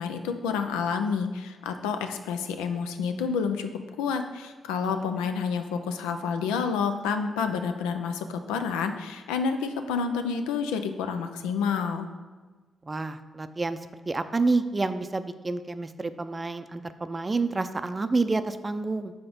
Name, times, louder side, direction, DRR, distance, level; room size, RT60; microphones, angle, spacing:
voice 1, 0.0-3.7 4.0-12.1, left 6 dB, 90° left, 7 dB, 0.4 m, -29 dB
voice 2, 12.8-13.8 14.1-19.1, right 3 dB, 30° right, 10 dB, 0.4 m, -28 dB
5.8 x 3.5 x 5.1 m, 1.3 s
hypercardioid pair, 45°, 0 cm